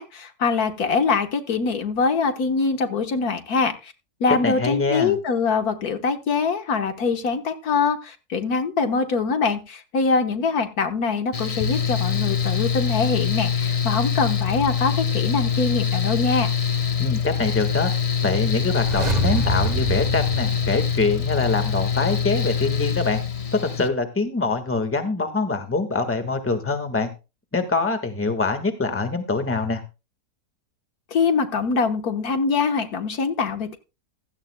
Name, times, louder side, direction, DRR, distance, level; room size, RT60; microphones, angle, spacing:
voice 1, 0.0-3.9 4.2-16.5 31.1-33.8, left 4 dB, 70° left, 7 dB, 1.7 m, -23 dB
voice 2, 4.4-5.2 17.0-17.9 18.2-23.2 23.5-27.1 27.5-29.8, left 3 dB, 10° left, 8 dB, 1.4 m, -24 dB
Mechanical fan, 11.3-23.9, left 7 dB, 30° left, 0.7 m, -24 dB
sound 1, 18.6-21.5 21.8-21.9, right 3 dB, 30° right, 1.2 m, -27 dB
16.0 x 13.5 x 2.2 m, 0.29 s
omnidirectional pair, 1.7 m